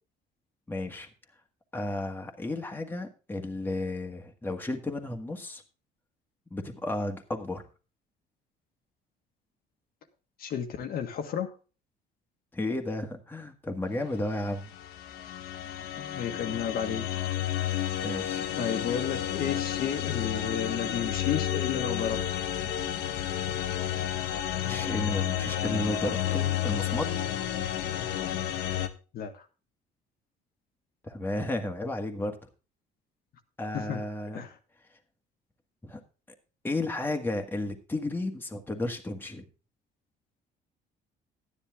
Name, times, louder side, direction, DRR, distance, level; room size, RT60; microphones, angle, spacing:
voice 1, 0.7-1.1 1.7-5.6 6.5-7.6 12.5-14.7 18.0-18.5 22.6-22.7 24.7-27.1 31.0-32.5 33.6-34.5 35.8-36.0 36.6-39.5, left 2 dB, 10° left, 3 dB, 1.7 m, -33 dB
voice 2, 10.4-11.5 16.0-17.0 18.6-22.2 29.1-29.4 33.7-34.0 34.3-34.5, left 8 dB, 60° left, 5 dB, 1.6 m, -32 dB
sound 1, 14.5-28.9, left 11 dB, 85° left, 1.2 m, -31 dB
12.5 x 10.0 x 3.6 m, 0.33 s
cardioid pair, 110°, 17 cm